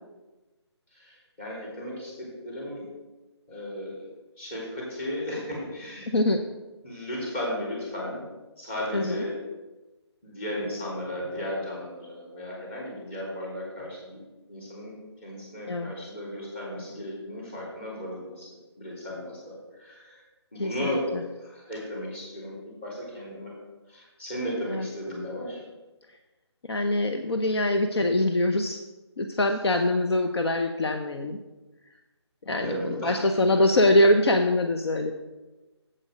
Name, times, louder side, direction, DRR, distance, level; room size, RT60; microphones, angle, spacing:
voice 1, 0.9-2.9 3.5-4.0 4.4-6.1 6.8-8.3 8.6-9.4 10.2-14.2 14.5-18.5 18.8-20.2 20.5-21.1 21.4-23.6 23.9-25.6 32.6-33.6, equal, 25° left, -4 dB, 3.4 m, -35 dB
voice 2, 8.9-9.2 15.7-15.9 20.6-21.2 24.7-24.9 26.7-28.8 29.2-31.4 32.4-35.1, left 1 dB, 65° left, 5 dB, 0.8 m, -23 dB
7.9 x 7.7 x 5.1 m, 1.1 s
figure-of-eight pair, 165°, 15 cm